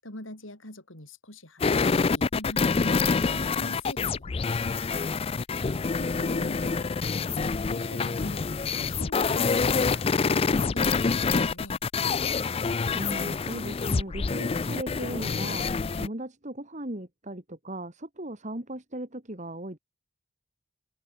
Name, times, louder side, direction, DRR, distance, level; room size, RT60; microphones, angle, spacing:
voice 1, 0.0-5.1 6.0-11.8, left 1 dB, 70° left, 7.4 m, -44 dB
sound 1, 1.6-16.1, left 4 dB, 30° left, 0.4 m, -26 dB
voice 2, 12.9-15.7 16.0-19.8, right 1 dB, 35° right, 2.9 m, -37 dB
open air
head